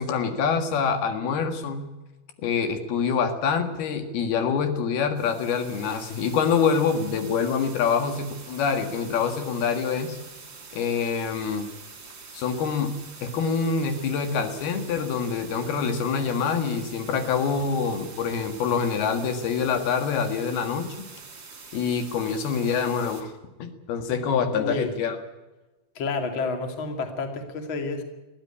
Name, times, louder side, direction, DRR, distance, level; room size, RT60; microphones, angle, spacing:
voice 1, 0.0-1.9 2.4-10.2 10.7-11.7 12.3-12.9 13.2-20.9 21.7-23.3 23.6-25.2, left 6 dB, 80° left, 7 dB, 3.7 m, -25 dB
sound 1, 5.1-23.2, right 4 dB, 30° right, 3.5 m, -45 dB
voice 2, 24.5-24.9 25.9-28.0, left 4 dB, 35° left, 6 dB, 2.7 m, -29 dB
21.0 x 15.5 x 9.9 m, 1.1 s
omnidirectional pair, 4.4 m